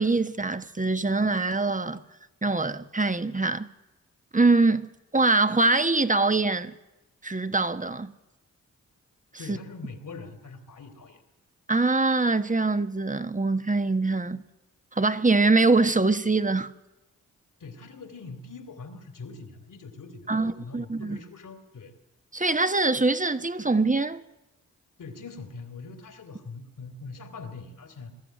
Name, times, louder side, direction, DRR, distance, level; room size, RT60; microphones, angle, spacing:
voice 1, 0.0-2.0 2.4-3.7 4.3-6.7 7.2-8.1 9.5-9.6 11.7-14.4 14.9-16.7 20.3-21.2 22.3-24.2, right 3 dB, 25° right, 1.4 m, -23 dB
voice 2, 9.4-11.2 17.6-21.9 25.0-28.1, left 4 dB, 65° left, 3.1 m, -42 dB
22.5 x 13.0 x 9.3 m
supercardioid pair, 40°, 34 cm